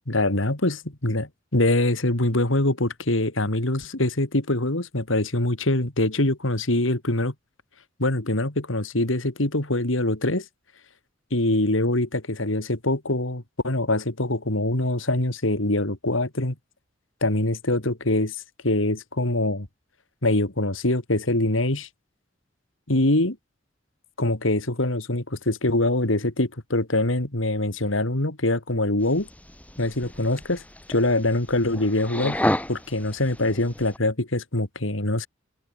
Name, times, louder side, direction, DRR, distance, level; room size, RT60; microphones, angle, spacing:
voice 1, 0.1-7.3 8.0-10.4 11.3-16.5 17.2-18.4 18.6-19.7 20.2-21.9 22.9-23.4 24.2-29.3 29.8-30.6 30.9-32.4 32.7-35.3, left 1 dB, 80° left, 3.0 m, -24 dB
sound 1, 29.0-34.0, left 1 dB, 10° left, 4.4 m, -32 dB
open air
head